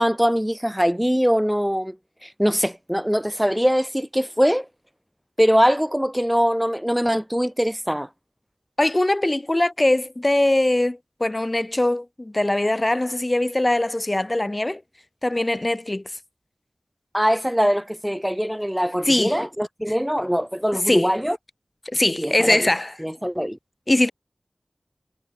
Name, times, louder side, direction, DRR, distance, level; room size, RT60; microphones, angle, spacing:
voice 1, 0.0-2.0 2.2-4.7 5.4-8.1 17.1-21.4 22.2-22.7 23.0-23.6, equal, 5° right, 4.1 m, -22 dB
voice 2, 8.8-14.8 15.2-16.0 19.1-19.4 20.9-21.1 21.8-22.9 23.9-24.1, left 1 dB, 30° left, 5.1 m, -21 dB
wide cardioid pair, 55°, 0 cm